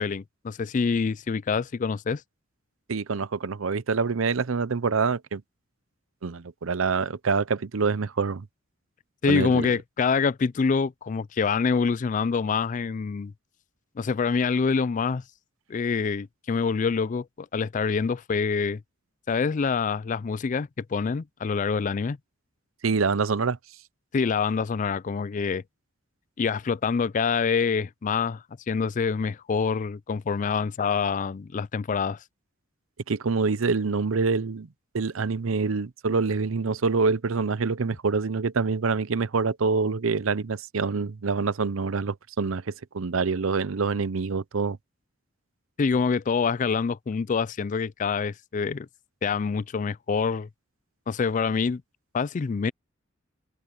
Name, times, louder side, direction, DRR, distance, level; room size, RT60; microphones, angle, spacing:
voice 1, 0.0-2.2 9.2-13.3 14.0-15.2 15.7-17.3 17.5-18.8 19.3-22.2 24.1-25.6 26.4-32.2 45.8-48.9 49.2-50.5 51.1-51.8 52.1-52.7, left 5 dB, 40° left, 0.4 m, -26 dB
voice 2, 2.9-5.4 6.2-8.5 9.3-9.7 22.8-23.6 33.1-34.7 34.9-44.8, right 4 dB, 80° right, 0.7 m, -26 dB
head